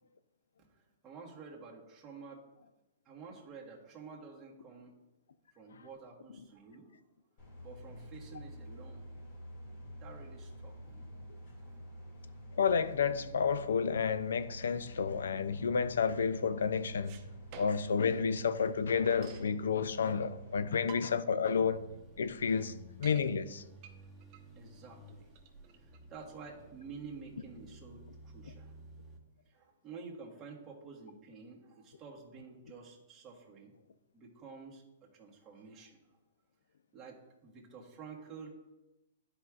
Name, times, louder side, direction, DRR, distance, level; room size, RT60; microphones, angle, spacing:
voice 1, 0.7-2.4 3.0-4.9 5.5-6.9 7.6-9.1 10.0-11.2 11.6-12.6 20.6-20.8 22.5-22.7 24.5-25.3 25.7-28.8 29.4-33.7 34.1-36.0 36.9-38.5, right 5 dB, 20° right, 1.4 m, -51 dB
sound 1, 7.4-20.6, equal, 45° left, 2.2 m, -48 dB
voice 2, 12.6-17.2 17.6-21.8 22.2-22.7 23.0-23.6, left 6 dB, 85° left, 0.4 m, -30 dB
sound 2, 17.0-18.0 18.3-18.4 18.6-19.5 20.3-20.4 20.7-21.4 21.8-21.9 22.2-22.3 22.7-23.2 23.8-26.7, right 8 dB, 40° right, 0.9 m, -52 dB
sound 3, 21.4-29.2, right 1 dB, ahead, 1.0 m, -55 dB
11.0 x 4.6 x 2.4 m
hypercardioid pair, 140°, 0 cm